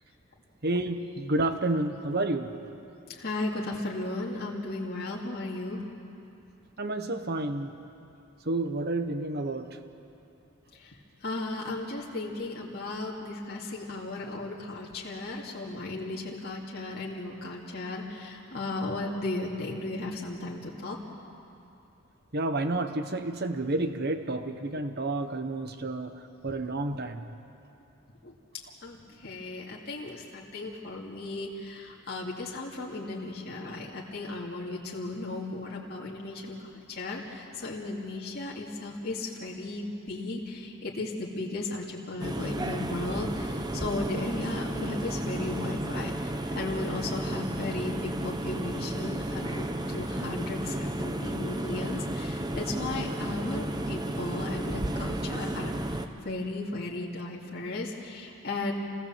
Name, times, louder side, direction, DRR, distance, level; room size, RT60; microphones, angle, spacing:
voice 1, 0.6-2.6 6.8-7.7 8.4-9.8 22.3-27.3, right 2 dB, 45° right, 8 dB, 1.2 m, -30 dB
voice 2, 3.1-5.8 10.8-21.0 26.5-26.6 28.2-28.3 28.8-36.6 36.9-58.7, left 2 dB, 45° left, -4 dB, 2.4 m, -35 dB
sound 1, 42.2-56.1, right 1 dB, 20° right, 0.8 m, -33 dB
27.5 x 18.5 x 7.5 m, 2.7 s
head